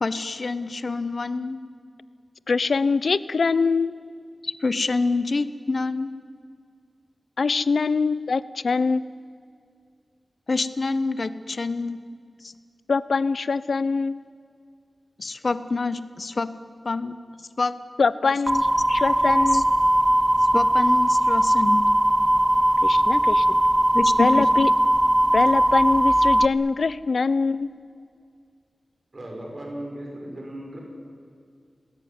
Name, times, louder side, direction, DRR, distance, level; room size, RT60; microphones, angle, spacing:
voice 1, 0.0-1.6 4.4-6.1 10.5-12.0 12.4-12.5 15.2-16.5 16.8-17.1 17.6-17.8 18.2-18.3 19.5-19.6 20.5-21.9 23.9-24.7, left 3 dB, 55° left, 13 dB, 1.3 m, -27 dB
voice 2, 2.5-3.9 7.4-9.2 12.9-14.2 18.0-19.7 22.8-23.6 24.2-24.7 25.3-27.7, left 4 dB, 80° left, 17 dB, 0.8 m, -23 dB
sound 1, 18.5-26.4, right 1 dB, 15° right, 0.8 m, -19 dB
voice 3, 29.1-30.8, right 1 dB, 40° right, 0 dB, 6.6 m, -36 dB
29.0 x 20.0 x 9.8 m, 2.3 s
wide cardioid pair, 100°, 0 cm